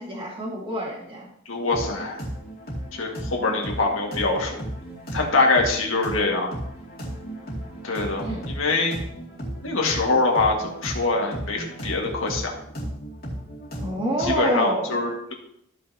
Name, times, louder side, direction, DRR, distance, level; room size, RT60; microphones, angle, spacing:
voice 1, 0.0-1.3 8.2-8.4 13.8-15.2, equal, 25° right, -5 dB, 2.2 m, -28 dB
voice 2, 1.5-2.2 2.9-4.6 5.1-6.5 7.8-9.0 9.6-12.5 14.2-15.3, left 3 dB, 70° left, 0 dB, 2.0 m, -24 dB
sound 1, 1.7-14.5, right 1 dB, 45° left, 2.5 m, -35 dB
14.5 x 5.7 x 2.9 m, 0.72 s
head